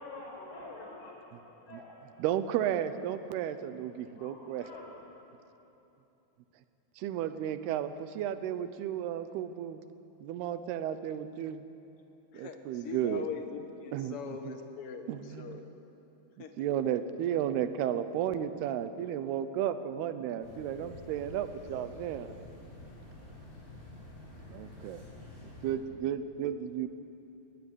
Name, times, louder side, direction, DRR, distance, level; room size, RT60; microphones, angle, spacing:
voice 1, 0.0-1.9 4.2-5.0, left 2 dB, 80° left, -2 dB, 7.4 m, -47 dB
voice 2, 1.7-4.7 7.0-9.8 10.2-11.6 12.3-13.3 13.9-14.5 15.1-15.6 16.6-22.4 24.5-25.0 25.4-26.9, right 10 dB, 85° right, 12 dB, 2.9 m, -33 dB
voice 3, 12.3-15.7 16.4-16.7, left 6 dB, 50° left, 6 dB, 1.8 m, -42 dB
sound 1, 20.4-25.7, left 2 dB, 30° left, 7.3 m, -49 dB
23.0 x 17.5 x 9.9 m, 2.9 s
omnidirectional pair, 4.5 m